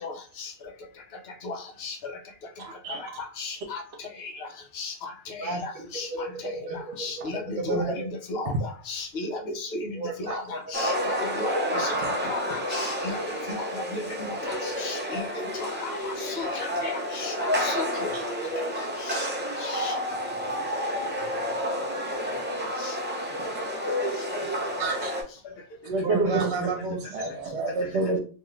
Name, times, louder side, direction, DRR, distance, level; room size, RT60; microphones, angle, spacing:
voice 1, 0.0-0.5 1.4-2.1 2.9-3.8 4.2-4.5 4.7-6.1 6.4-12.0 12.3-15.3 15.5-18.1 18.6-19.3 19.6-20.0 22.6-23.0 26.5-26.7, left 3 dB, 65° left, 5 dB, 0.8 m, -35 dB
voice 2, 2.6-3.0 12.0-12.2 24.8-25.1 25.8-26.7 27.1-28.2, right 3 dB, 80° right, 2 dB, 0.9 m, -28 dB
voice 3, 5.4-7.1 7.6-7.9 10.0-10.4 16.6-16.9 17.4-17.6 18.3-18.8 23.7-24.6 26.0-27.4, right 3 dB, 50° right, 2 dB, 0.8 m, -33 dB
sound 1, 10.7-25.2, equal, 15° right, 0.4 m, -30 dB
2.6 x 2.4 x 3.1 m, 0.37 s
omnidirectional pair, 1.1 m